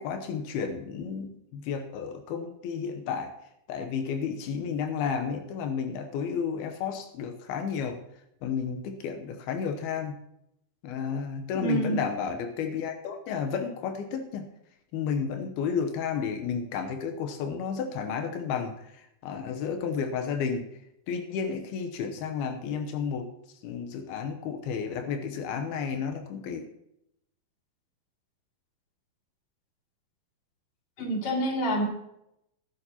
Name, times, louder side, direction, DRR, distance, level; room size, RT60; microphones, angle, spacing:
voice 1, 0.0-3.3 3.7-8.0 8.4-10.1 10.8-14.5 14.9-18.9 19.2-20.7 21.1-23.3 23.6-26.6, left 6 dB, 85° left, 5 dB, 2.9 m, -32 dB
voice 2, 11.6-12.0 31.0-31.9, right 1 dB, 40° left, -1 dB, 3.4 m, -27 dB
19.5 x 11.0 x 2.9 m, 0.80 s
omnidirectional pair, 4.3 m